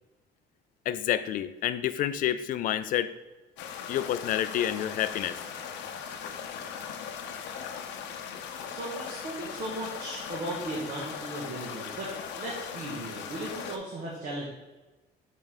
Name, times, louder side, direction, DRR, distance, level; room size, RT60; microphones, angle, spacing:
voice 1, 0.9-3.1 3.9-5.4, left 11 dB, 50° left, 13 dB, 0.4 m, -29 dB
sound 1, 3.6-13.8, left 7 dB, 90° left, 0.8 m, -39 dB
voice 2, 8.6-14.5, right 2 dB, 50° right, -4 dB, 1.4 m, -37 dB
7.5 x 4.5 x 3.6 m, 1.2 s
cardioid pair, 155°, 18 cm